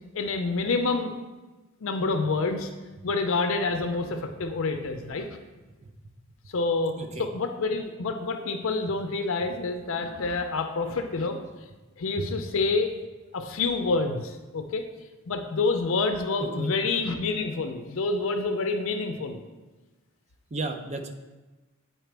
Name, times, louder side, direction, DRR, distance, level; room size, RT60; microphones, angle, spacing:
voice 1, 0.1-1.1 1.8-2.7 3.0-5.3 6.5-11.4 12.0-12.9 13.3-14.8 15.3-19.4, left 3 dB, 65° left, 6 dB, 0.5 m, -27 dB
voice 2, 7.0-7.3 12.1-12.3 16.4-16.7 20.5-21.1, right 3 dB, 30° right, 5 dB, 0.5 m, -34 dB
9.0 x 4.4 x 3.3 m, 1.2 s
head